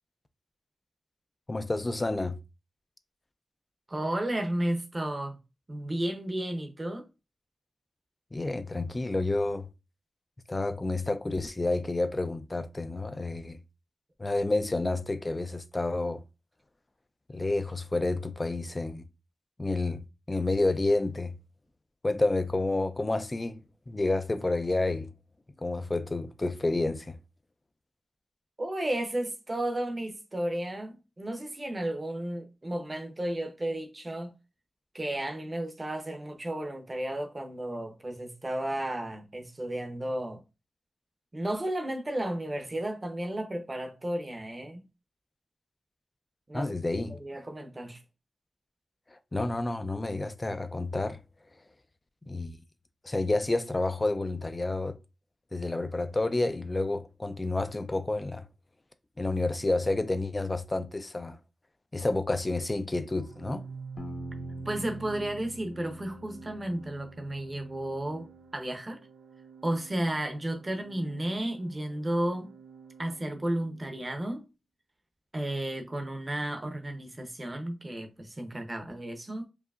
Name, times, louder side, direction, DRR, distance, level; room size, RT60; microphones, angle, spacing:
voice 1, 1.5-2.4 8.3-9.7 10.5-13.6 14.2-16.2 17.3-19.0 19.6-20.0 20.3-21.3 22.0-25.1 25.6-27.2 46.5-47.2 49.3-51.2 52.3-52.6 53.0-55.0 55.5-58.4 59.2-61.4 61.9-63.6, left 2 dB, 20° left, 0.3 m, -29 dB
voice 2, 3.9-5.4 5.7-7.1 28.6-34.3 34.9-40.4 41.3-44.8 46.5-46.8 47.1-48.0 64.7-68.3 68.5-69.0 69.6-72.5 73.0-74.4 75.3-79.5, right 1 dB, 20° right, 0.7 m, -33 dB
Organ, 63.2-73.9, right 5 dB, 90° right, 0.3 m, -47 dB
sound 1, 64.0-68.6, left 2 dB, 50° left, 0.9 m, -47 dB
4.8 x 2.7 x 2.4 m
wide cardioid pair, 160°, 0 cm